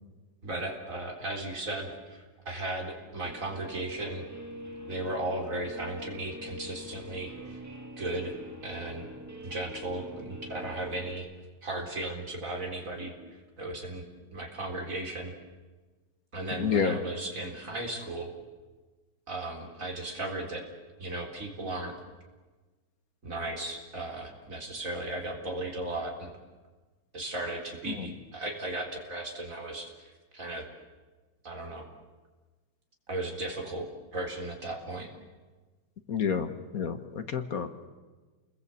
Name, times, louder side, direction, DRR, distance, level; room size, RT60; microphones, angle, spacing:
voice 1, 0.4-4.2 4.9-7.6 8.0-8.3 8.6-9.1 9.4-11.3 11.6-13.1 13.6-14.0 14.3-15.3 16.3-18.3 19.3-20.6 21.0-22.0 23.2-26.3 27.1-30.7 31.4-31.9 33.1-35.1, right 2 dB, 50° right, 1 dB, 4.4 m, -36 dB
Guitar, 3.2-11.1, equal, 10° right, 2.2 m, -44 dB
voice 2, 16.6-17.0 27.9-28.1 36.1-37.7, left 6 dB, 55° left, 10 dB, 1.7 m, -29 dB
29.5 x 21.0 x 8.4 m, 1.3 s
omnidirectional pair, 1.9 m